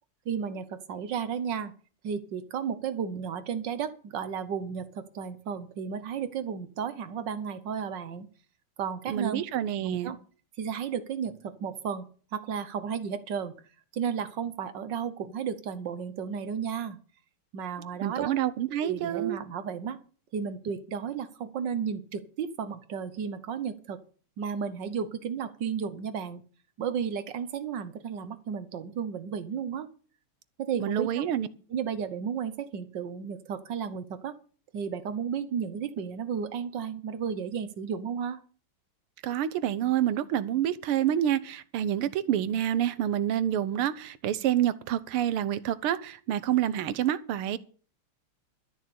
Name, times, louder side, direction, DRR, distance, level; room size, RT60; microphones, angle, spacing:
voice 1, 0.2-1.7 2.0-8.3 8.8-9.4 9.8-10.2 10.6-13.5 13.9-17.0 17.5-18.3 18.8-20.0 20.3-24.0 24.4-26.4 26.8-29.9 30.6-31.3 31.7-34.3 34.7-38.4, right 7 dB, 60° right, 1.6 m, -33 dB
voice 2, 9.1-10.1 18.0-19.4 30.8-31.5 39.2-47.6, right 11 dB, 85° right, 1.7 m, -28 dB
12.5 x 6.5 x 8.5 m
omnidirectional pair, 2.4 m